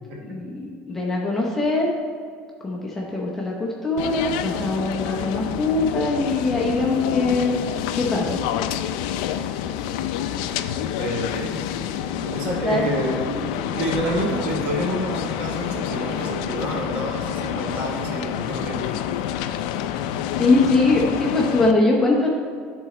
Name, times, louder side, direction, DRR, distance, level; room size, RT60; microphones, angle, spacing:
voice 1, 0.2-1.9 2.6-7.5 7.9-8.4 12.6-12.8 20.4-22.3, left 2 dB, 10° left, -4 dB, 0.7 m, -22 dB
sound 1, 4.0-21.7, left 10 dB, 80° left, 0.4 m, -28 dB
voice 2, 11.0-11.6 12.2-13.5 13.7-19.0, right 1 dB, 40° right, 0 dB, 1.4 m, -28 dB
10.5 x 3.8 x 4.3 m, 2.1 s
cardioid pair, 170°, 4 cm